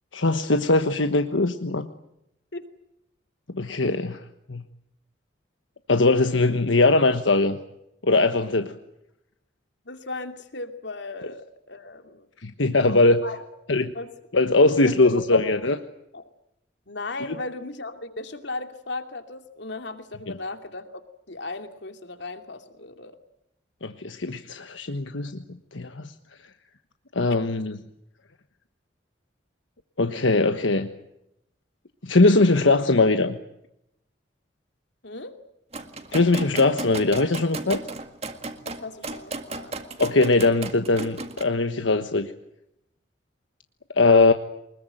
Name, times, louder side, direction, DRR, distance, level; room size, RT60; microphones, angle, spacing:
voice 1, 0.1-1.9 3.5-4.2 4.5-4.6 5.9-7.6 8.0-8.7 12.4-13.2 13.7-13.9 14.3-15.8 23.8-25.4 25.7-26.1 27.1-27.8 30.0-30.9 32.0-33.4 36.1-37.8 40.0-42.3 44.0-44.3, left 2 dB, 90° left, 7 dB, 1.3 m, -20 dB
voice 2, 9.9-12.3 13.2-13.5 13.9-14.1 14.8-15.6 16.1-16.3 16.9-21.0 21.3-23.2 27.3-27.4 35.0-35.3 38.6-39.8, left 3 dB, 70° left, 7 dB, 2.7 m, -36 dB
sound 1, 35.7-41.4, right 2 dB, 35° right, 2.0 m, -35 dB
24.5 x 21.0 x 9.0 m, 0.83 s
head